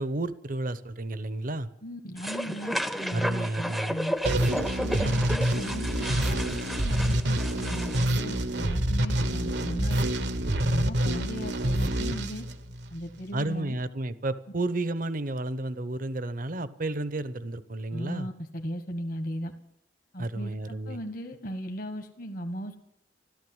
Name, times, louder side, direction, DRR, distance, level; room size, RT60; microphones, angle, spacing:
voice 1, 0.0-1.7 3.1-3.9 13.3-18.3 20.2-21.0, right 2 dB, 50° right, 14 dB, 0.9 m, -31 dB
voice 2, 1.8-4.1 4.8-10.1 10.6-12.5 12.9-13.8 17.9-19.5 20.1-22.8, equal, 55° left, 5 dB, 1.5 m, -37 dB
sound 1, 2.2-8.1, equal, ahead, 0.7 m, -33 dB
sound 2, 4.2-13.1, right 1 dB, 75° right, 1.3 m, -27 dB
14.5 x 13.0 x 7.9 m, 0.81 s
head